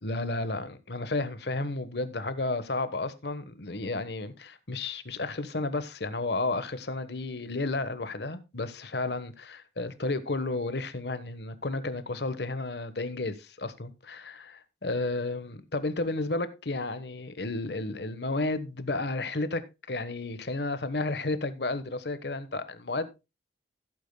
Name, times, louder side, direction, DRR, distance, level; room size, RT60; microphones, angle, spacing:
voice 1, 0.0-23.2, left 2 dB, 65° left, 1.2 m, -32 dB
16.0 x 8.7 x 2.2 m
head